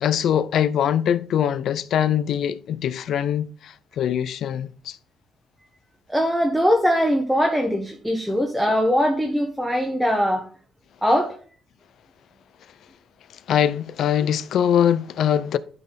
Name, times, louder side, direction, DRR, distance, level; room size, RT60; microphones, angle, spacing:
voice 1, 0.0-5.0 13.5-15.6, left 9 dB, 70° left, 0.5 m, -22 dB
voice 2, 6.1-10.4 11.0-11.4, equal, 5° right, 1.1 m, -21 dB
12.0 x 4.0 x 4.1 m
cardioid pair, 105°, 0 cm